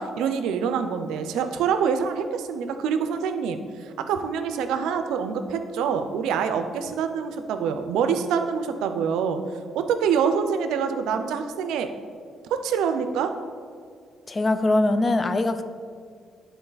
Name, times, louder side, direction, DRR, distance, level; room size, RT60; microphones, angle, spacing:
voice 1, 0.0-9.4 9.7-11.9 12.5-13.3, right 6 dB, 90° right, 8 dB, 0.5 m, -26 dB
voice 2, 14.3-15.6, left 2 dB, 30° left, 10 dB, 0.5 m, -22 dB
10.0 x 4.0 x 4.0 m, 2.1 s
cardioid pair, 90°, 0 cm